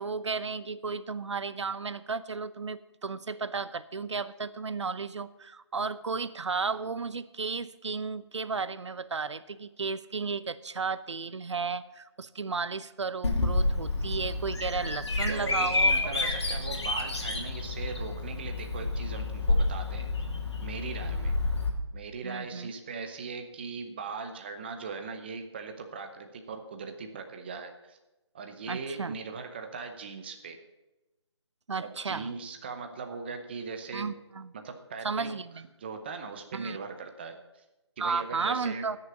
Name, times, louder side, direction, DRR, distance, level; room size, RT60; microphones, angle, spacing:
voice 1, 0.0-15.9 16.2-16.3 21.0-21.4 22.2-22.7 28.7-29.2 31.7-32.3 33.9-34.5 35.0-35.7 36.5-36.8 38.0-39.0, right 4 dB, 75° right, 15 dB, 0.8 m, -34 dB
Bird vocalization bird call bird song, 13.2-21.7, left 2 dB, 70° left, 2.7 m, -29 dB
voice 2, 15.3-20.1 20.6-21.4 21.9-28.0 28.3-30.6 31.8-34.1 34.5-35.3 35.8-37.6 38.0-38.8, right 5 dB, 20° right, 6 dB, 0.8 m, -39 dB
14.5 x 6.8 x 7.0 m, 1.0 s
figure-of-eight pair, 170°, 15 cm